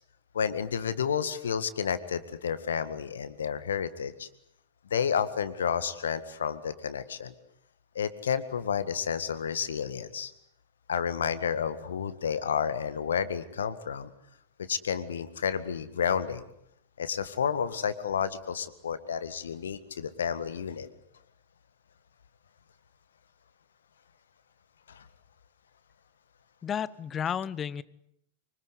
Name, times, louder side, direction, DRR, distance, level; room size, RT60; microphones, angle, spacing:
voice 1, 0.3-4.3 4.9-7.3 8.0-10.3 10.9-14.1 14.6-16.5 17.0-20.9 24.9-25.1, left 7 dB, 70° left, 13 dB, 1.8 m, -31 dB
voice 2, 26.6-27.8, left 8 dB, 25° left, 20 dB, 1.0 m, -32 dB
25.0 x 25.0 x 8.2 m, 0.75 s
figure-of-eight pair, 95°, 0 cm